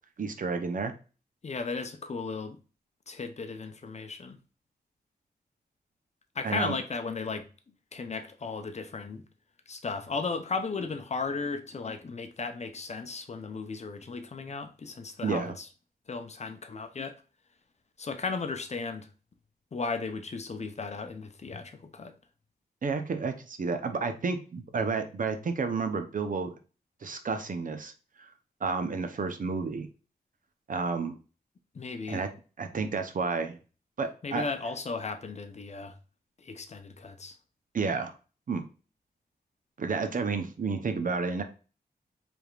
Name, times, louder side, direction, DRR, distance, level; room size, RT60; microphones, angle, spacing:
voice 1, 0.2-0.9 6.4-6.8 15.2-15.5 22.8-26.5 27.0-27.9 28.2-28.3 28.6-29.9 30.7-31.2 32.1-32.3 32.6-33.6 34.0-34.4 37.7-38.1 38.5-38.6 39.8-41.4, right 4 dB, 55° right, 0.7 m, -31 dB
voice 2, 1.4-2.6 3.1-4.4 6.3-7.5 7.9-9.2 9.7-15.7 16.1-17.2 18.0-19.1 19.7-22.1 31.7-32.2 34.2-35.9 36.4-37.4, left 4 dB, 40° left, 0.6 m, -35 dB
4.8 x 3.4 x 2.4 m
wide cardioid pair, 105°, 17 cm